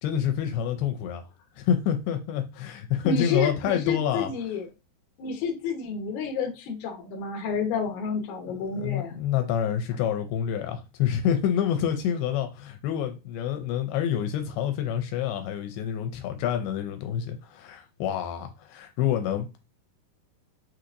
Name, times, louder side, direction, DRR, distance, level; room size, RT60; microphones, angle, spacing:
voice 1, 0.0-1.2 1.6-4.3 8.7-19.7, left 9 dB, 80° left, 2.5 m, -27 dB
voice 2, 3.0-4.7 5.2-9.2, left 4 dB, 65° left, 2.1 m, -30 dB
6.2 x 2.8 x 2.6 m
omnidirectional pair, 4.5 m